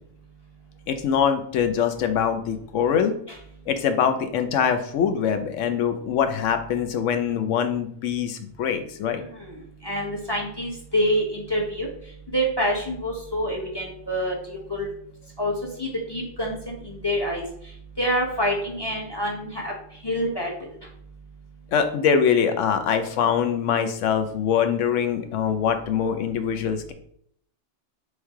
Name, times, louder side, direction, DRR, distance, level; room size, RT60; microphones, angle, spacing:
voice 1, 0.9-3.2 3.7-9.2 21.7-26.9, left 7 dB, 80° left, 8 dB, 0.9 m, -23 dB
voice 2, 9.2-9.5 9.8-11.9 12.3-14.9 15.4-15.5 15.8-17.4 18.0-19.7 20.0-20.5, equal, 25° left, -1 dB, 0.8 m, -26 dB
3.2 x 3.1 x 4.6 m, 0.66 s
omnidirectional pair, 1.3 m